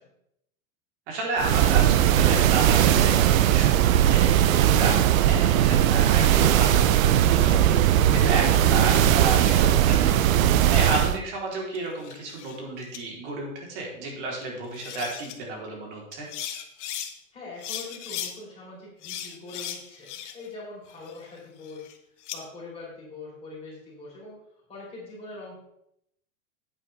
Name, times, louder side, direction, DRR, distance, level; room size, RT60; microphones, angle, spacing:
voice 1, 1.1-7.8 8.1-16.3, right 2 dB, 55° right, -1 dB, 4.0 m, -32 dB
sound 1, 1.4-11.2, right 11 dB, 70° right, 0.7 m, -19 dB
sound 2, 8.9-10.0 11.5-12.6 12.9-13.0 14.4-14.5 14.7-15.3 16.1-17.1 17.6-18.3 19.0-20.5 20.9-22.4, left 10 dB, 55° left, 1.3 m, -38 dB
voice 2, 17.3-21.9 22.3-24.3 24.7-25.5, left 3 dB, 15° left, -6 dB, 4.4 m, -42 dB
9.6 x 8.7 x 3.5 m, 0.78 s
supercardioid pair, 160°, 42 cm